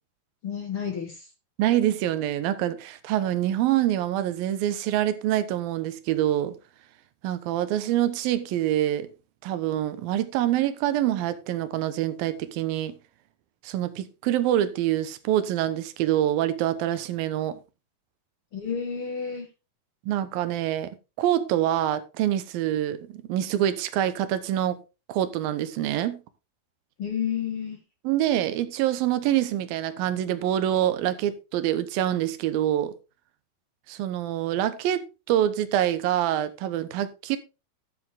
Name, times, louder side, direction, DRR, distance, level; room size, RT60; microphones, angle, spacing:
voice 1, 0.4-1.2 18.5-19.5 27.0-27.8, left 7 dB, 50° left, 1.7 m, -30 dB
voice 2, 1.6-6.6 7.2-9.1 9.4-13.0 13.6-17.6 20.1-20.9 21.2-24.8 25.1-26.2 28.0-32.9 33.9-37.4, right 12 dB, 75° right, 2.7 m, -25 dB
12.0 x 7.7 x 3.8 m
omnidirectional pair, 4.5 m